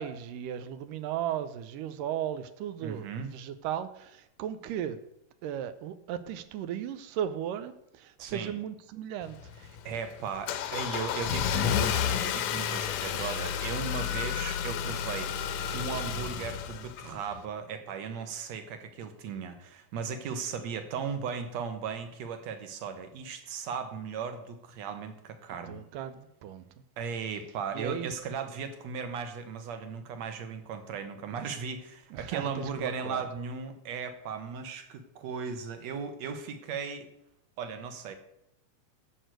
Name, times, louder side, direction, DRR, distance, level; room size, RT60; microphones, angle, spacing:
voice 1, 0.0-3.1 3.3-5.0 5.4-9.4 25.7-26.7 27.7-28.1 32.1-33.3, right 10 dB, 80° right, 12 dB, 2.4 m, -36 dB
voice 2, 2.8-3.3 8.2-8.5 9.9-25.8 27.0-37.1 37.6-38.2, right 6 dB, 60° right, 8 dB, 2.2 m, -37 dB
Car / Engine starting, 9.2-17.4, left 8 dB, 70° left, 1.9 m, -31 dB
11.5 x 6.6 x 7.7 m, 0.80 s
omnidirectional pair, 3.8 m